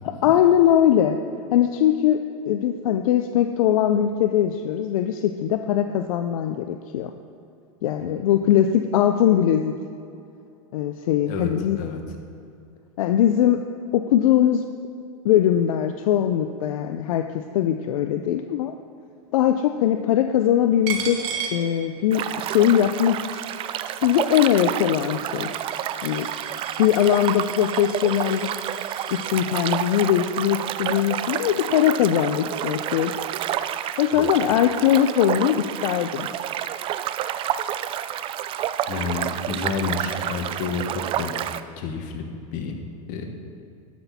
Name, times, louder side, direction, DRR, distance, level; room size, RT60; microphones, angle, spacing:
voice 1, 0.2-1.2 1.5-2.2 2.5-7.1 7.8-9.7 10.7-11.8 13.0-13.6 13.9-14.6 15.2-18.7 19.3-21.2 21.5-23.4 24.0-25.5 26.0-26.3 26.8-28.5 29.1-33.1 34.0-36.3, left 10 dB, 75° left, 7 dB, 0.5 m, -21 dB
voice 2, 11.2-12.0 34.1-34.3 38.9-41.3 41.8-42.8 43.1-43.3, left 5 dB, 50° left, 4 dB, 1.4 m, -30 dB
Coin (dropping), 20.9-22.3 22.7-29.3, right 6 dB, 55° right, 1.4 m, -37 dB
sound 1, 22.1-41.6, right 11 dB, 30° right, 0.4 m, -29 dB
12.5 x 6.1 x 4.2 m, 2.5 s
hypercardioid pair, 115°, 18 cm